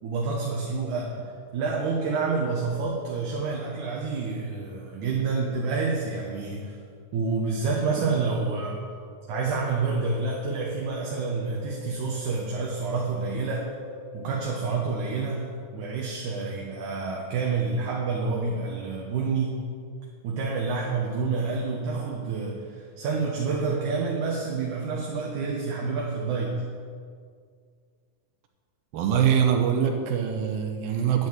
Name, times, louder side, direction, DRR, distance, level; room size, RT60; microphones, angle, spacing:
voice 1, 0.0-6.8 7.1-8.8 9.3-13.7 14.1-19.6 20.2-26.6, right 4 dB, 65° right, -1 dB, 2.6 m, -28 dB
sound 1, 9.3-15.3, left 5 dB, 75° left, 2.6 m, -43 dB
voice 2, 28.9-31.3, right 8 dB, 80° right, 4 dB, 2.8 m, -23 dB
11.0 x 10.5 x 8.0 m, 2.1 s
omnidirectional pair, 4.1 m